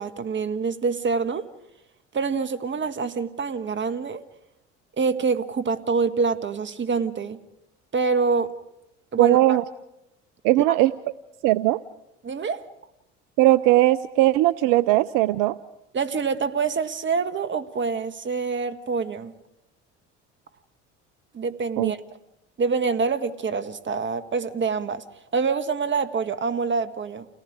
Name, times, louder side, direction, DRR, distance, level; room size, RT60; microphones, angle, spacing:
voice 1, 0.0-1.5 2.1-4.2 5.0-7.4 7.9-8.5 9.1-9.6 10.7-10.8 12.2-12.7 15.9-19.3 21.3-22.0 22.6-25.0 25.3-27.3, right 5 dB, 35° right, 10 dB, 1.5 m, -26 dB
voice 2, 9.2-9.6 10.4-10.9 11.4-11.8 13.4-15.6 21.8-21.9, right 16 dB, 65° right, 17 dB, 0.6 m, -19 dB
29.5 x 18.5 x 4.8 m, 0.88 s
hypercardioid pair, 65°, 34 cm